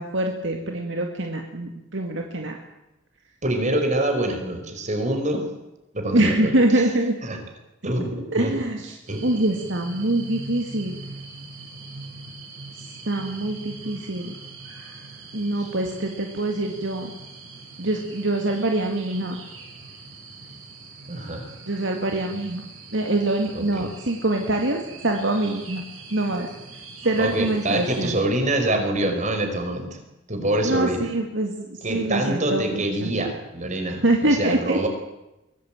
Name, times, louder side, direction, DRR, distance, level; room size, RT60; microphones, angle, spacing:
voice 1, 0.0-2.6 6.1-7.2 8.3-8.9 9.2-11.0 13.1-14.3 15.3-17.1 17.8-19.4 21.7-25.8 26.1-26.5 27.0-28.2 30.6-33.1 34.0-34.8, right 1 dB, 65° right, 3 dB, 2.3 m, -24 dB
voice 2, 3.4-5.5 5.9-6.9 7.2-7.4 7.8-8.6 9.1-9.3 15.6-15.7 21.1-21.5 23.5-23.9 27.2-30.0 30.3-31.1 31.8-34.9, right 1 dB, 40° right, 5 dB, 5.1 m, -25 dB
sound 1, 9.1-28.2, right 3 dB, 90° right, 6.3 m, -42 dB
23.0 x 18.0 x 9.0 m, 0.96 s
head